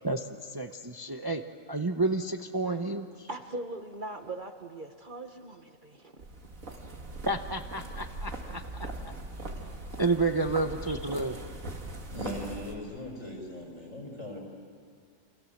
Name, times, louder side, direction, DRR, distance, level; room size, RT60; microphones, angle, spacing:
voice 1, 0.0-1.4 1.7-3.3 7.2-9.1 10.0-11.4, right 3 dB, 20° right, 6 dB, 0.8 m, -30 dB
voice 2, 3.3-6.2, right 2 dB, 40° right, 6 dB, 1.4 m, -40 dB
sound 1, 6.2-12.8, right 2 dB, 80° right, 2.7 m, -40 dB
voice 3, 12.1-14.4, left 1 dB, 70° left, 2 dB, 5.9 m, -39 dB
29.0 x 26.0 x 7.3 m, 2.1 s
omnidirectional pair, 1.4 m